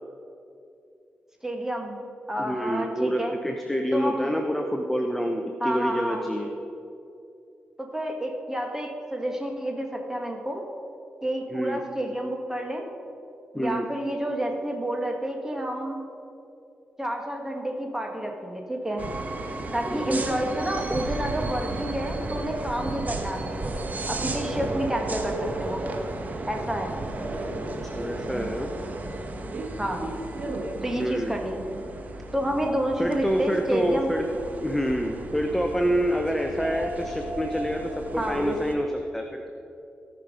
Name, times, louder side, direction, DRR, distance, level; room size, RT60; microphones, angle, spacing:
voice 1, 1.4-3.3 3.9-4.3 5.6-6.2 7.8-10.6 11.2-12.9 13.5-16.0 17.0-19.1 19.7-23.7 24.1-25.8 26.5-26.9 29.8-30.0 30.8-31.6 32.3-34.1 38.2-38.4, right 1 dB, 15° right, 2 dB, 1.8 m, -29 dB
voice 2, 2.4-6.5 11.5-11.8 13.5-13.9 19.8-20.2 27.6-28.7 31.0-31.4 33.0-34.3 34.6-39.5, equal, 5° left, 3 dB, 0.9 m, -27 dB
sound 1, 19.0-38.8, right 2 dB, 45° right, 1.2 m, -34 dB
17.0 x 6.0 x 5.2 m, 2.6 s
cardioid pair, 70°, 4 cm